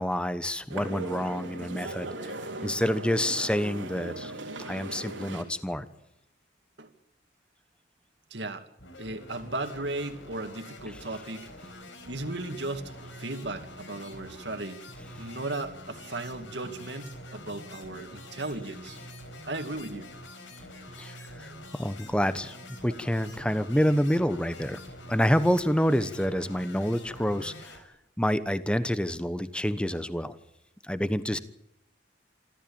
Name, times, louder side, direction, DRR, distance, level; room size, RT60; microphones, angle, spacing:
voice 1, 0.0-4.3 4.6-5.8 21.0-22.6 22.8-24.8 25.1-27.8 28.2-30.3 30.8-31.4, equal, 5° left, 12 dB, 1.1 m, -28 dB
sound 1, 0.7-5.5, right 2 dB, 90° right, 3.6 m, -38 dB
voice 2, 8.3-8.6 9.0-11.5 12.1-14.8 15.2-19.0 19.5-20.1, right 2 dB, 65° right, 7 dB, 2.4 m, -36 dB
sound 2, 8.8-27.8, left 3 dB, 90° left, 4.9 m, -48 dB
sound 3, 11.6-27.6, right 2 dB, 45° right, 1.9 m, -49 dB
27.0 x 13.5 x 8.8 m, 0.81 s
head